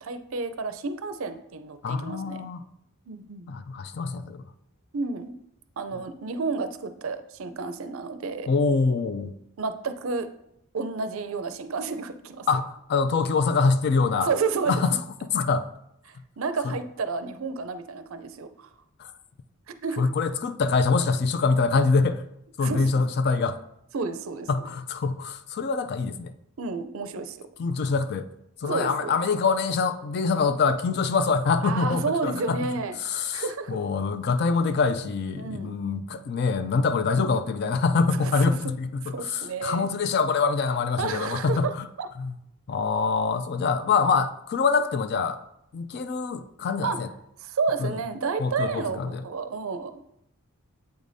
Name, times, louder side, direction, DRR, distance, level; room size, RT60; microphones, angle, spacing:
voice 1, 0.0-2.5 3.1-3.5 4.9-5.4 5.8-8.5 9.6-10.3 10.7-12.5 14.2-14.8 16.1-18.7 19.7-20.1 22.6-23.0 23.9-24.5 26.6-27.4 28.6-29.1 31.6-33.8 35.4-35.7 38.2-38.3 39.0-39.9 41.0-42.1 46.8-47.0 47.4-49.9, right 4 dB, 60° right, 10 dB, 0.5 m, -31 dB
voice 2, 1.8-2.6 3.5-4.4 8.5-9.3 12.5-14.3 14.7-14.9 15.3-15.7 16.6-16.7 19.0-19.1 20.0-22.2 22.6-23.6 24.5-26.3 27.6-28.3 28.6-32.6 33.0-41.9 42.2-42.3 42.7-45.4 45.7-47.1 47.8-47.9 48.4-49.2, left 4 dB, 45° left, 11 dB, 0.3 m, -25 dB
8.1 x 4.9 x 2.6 m, 0.79 s
head